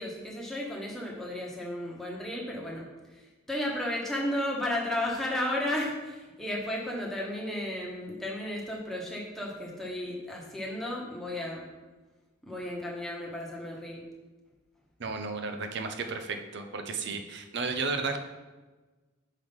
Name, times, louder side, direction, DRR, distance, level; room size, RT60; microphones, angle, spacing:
voice 1, 0.0-2.9 3.5-11.7 12.4-14.0, left 1 dB, ahead, -4 dB, 1.1 m, -33 dB
voice 2, 15.0-18.2, right 4 dB, 60° right, 6 dB, 0.7 m, -33 dB
5.7 x 4.7 x 5.3 m, 1.2 s
head